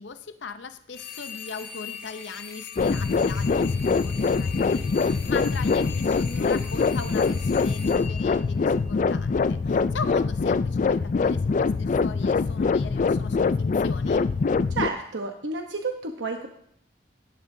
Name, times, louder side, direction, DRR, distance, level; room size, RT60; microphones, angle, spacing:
voice 1, 0.0-14.3, left 4 dB, 80° left, 10 dB, 0.7 m, -39 dB
sound 1, 0.9-9.1, left 7 dB, 60° left, 2.0 m, -41 dB
sound 2, 2.8-14.9, left 4 dB, 45° left, 0.3 m, -24 dB
voice 2, 14.7-16.5, right 3 dB, 90° right, 4 dB, 1.0 m, -30 dB
17.5 x 11.0 x 2.7 m, 0.69 s
head